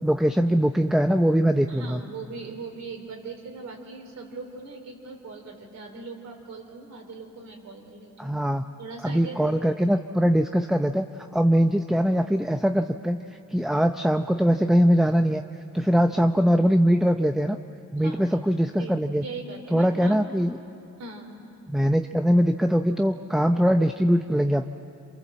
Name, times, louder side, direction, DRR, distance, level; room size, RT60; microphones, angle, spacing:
voice 1, 0.0-2.0 8.2-8.6 9.0-11.1 11.3-13.2 13.5-15.4 15.7-17.6 17.9-19.2 19.7-20.6 21.7-24.6, equal, ahead, 7 dB, 0.7 m, -22 dB
voice 2, 1.7-8.3 8.8-9.7 15.8-15.9 18.0-18.4 18.8-20.2 21.0-21.3, right 4 dB, 65° right, 2 dB, 4.9 m, -40 dB
27.5 x 27.0 x 7.6 m, 2.6 s
cardioid pair, 90°, 30 cm